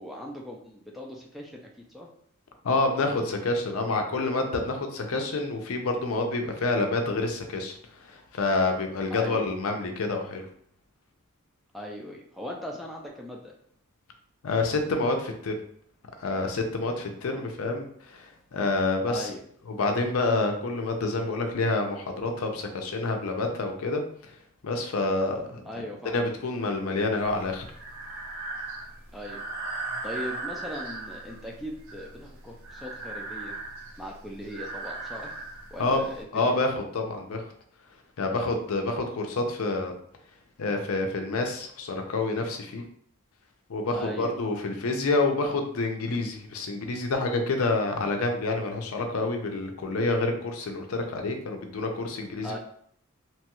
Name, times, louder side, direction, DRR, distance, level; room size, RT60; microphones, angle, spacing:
voice 1, 0.0-1.6 1.9-2.1 9.1-9.4 11.7-13.5 17.2-17.4 19.1-19.4 25.7-26.2 29.1-29.4 30.0-33.5 34.0-35.3 35.7-36.6 43.9-44.3 52.4-52.6, equal, ahead, -2 dB, 0.3 m, -39 dB
voice 2, 2.6-7.8 8.1-10.5 14.4-15.6 16.2-19.4 19.7-24.0 24.6-25.6 26.1-27.6 35.8-36.0 36.3-37.4 38.2-39.9 40.6-42.8 43.7-52.5, left 3 dB, 80° left, 4 dB, 0.5 m, -28 dB
Breathing, 27.2-36.2, right 2 dB, 80° right, 0.5 m, -38 dB
3.0 x 2.3 x 2.9 m, 0.65 s
head